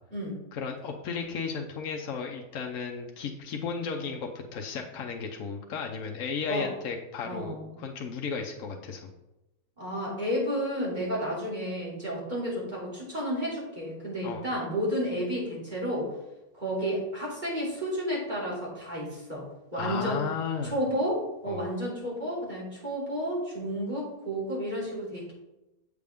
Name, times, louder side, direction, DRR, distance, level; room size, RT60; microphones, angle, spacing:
voice 1, 0.5-9.1 14.2-14.4 19.7-20.7 21.5-21.6, left 5 dB, 70° left, 1 dB, 1.2 m, -34 dB
voice 2, 7.2-7.7 9.8-16.1 16.5-19.4 19.7-20.2 20.6-25.3, equal, 30° right, -6 dB, 3.0 m, -31 dB
7.6 x 6.6 x 3.5 m, 0.96 s
omnidirectional pair, 1.5 m